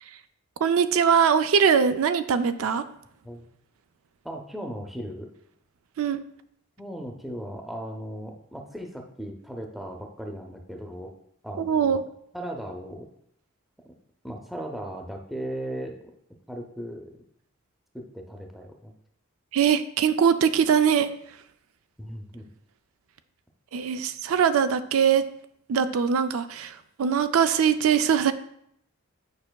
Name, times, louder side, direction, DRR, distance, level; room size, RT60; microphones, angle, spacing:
voice 1, 0.6-2.8 6.0-6.2 11.6-12.0 19.5-21.1 23.7-25.3 25.7-28.3, right 7 dB, 75° right, 11 dB, 0.4 m, -22 dB
voice 2, 4.2-5.3 6.8-11.1 11.4-12.0 12.3-13.1 13.8-13.9 14.2-15.9 16.5-17.1 17.9-18.9 22.0-22.5, equal, ahead, 2 dB, 0.5 m, -37 dB
8.8 x 5.3 x 2.3 m, 0.72 s
head